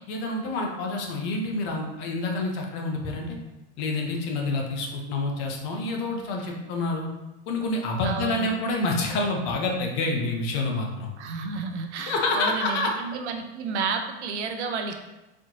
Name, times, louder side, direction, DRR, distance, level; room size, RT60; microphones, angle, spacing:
voice 1, 0.1-3.4 3.8-7.1 7.5-11.1 12.1-12.9, left 2 dB, 35° left, 1 dB, 0.6 m, -28 dB
voice 2, 8.0-8.5 11.2-15.0, right 5 dB, 85° right, 5 dB, 0.6 m, -31 dB
4.2 x 3.0 x 2.8 m, 1.0 s
supercardioid pair, 155°, 33 cm